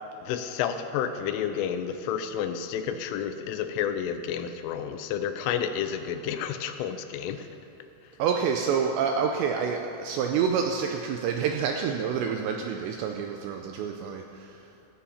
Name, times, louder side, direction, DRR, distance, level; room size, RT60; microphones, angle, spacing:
voice 1, 0.2-7.4, left 8 dB, 85° left, 9 dB, 3.2 m, -30 dB
voice 2, 8.2-14.6, right 6 dB, 90° right, 3 dB, 2.5 m, -28 dB
15.5 x 14.5 x 4.3 m, 2.8 s
omnidirectional pair, 5.7 m